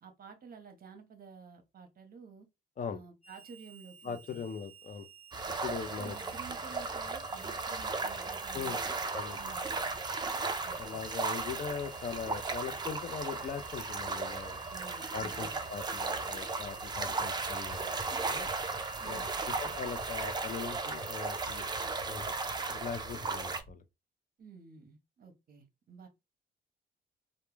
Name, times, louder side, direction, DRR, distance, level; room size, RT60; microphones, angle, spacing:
voice 1, 0.0-2.5 2.9-4.5 6.0-9.0 9.3-9.8 10.6-11.0 14.7-15.6 19.0-19.4 24.4-26.1, right 5 dB, 50° right, 0.7 m, -52 dB
Harmonica, 3.2-22.0, right 2 dB, 5° left, 0.9 m, -55 dB
voice 2, 4.0-5.1 5.6-6.2 8.5-8.8 9.1-9.4 10.8-14.6 15.1-18.5 19.0-21.6 22.0-22.3 22.7-23.8, left 6 dB, 40° left, 0.5 m, -40 dB
sound 1, 5.3-23.6, right 4 dB, 20° right, 0.4 m, -36 dB
sound 2, 16.6-23.7, left 1 dB, 60° left, 0.9 m, -53 dB
2.2 x 2.1 x 3.0 m
cardioid pair, 90°, 20 cm